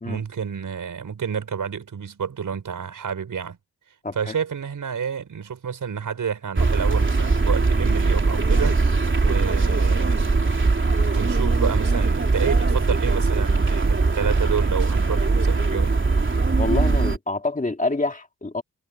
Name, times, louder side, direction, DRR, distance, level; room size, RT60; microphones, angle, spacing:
voice 1, 0.0-3.6 4.1-8.8 9.2-10.2 11.1-16.0, right 7 dB, 80° right, 6.0 m, -29 dB
voice 2, 4.0-4.3 16.6-18.6, left 2 dB, 25° left, 2.4 m, -27 dB
sound 1, 6.6-17.2, right 3 dB, 40° right, 3.6 m, -20 dB
cardioid pair, 70°, 31 cm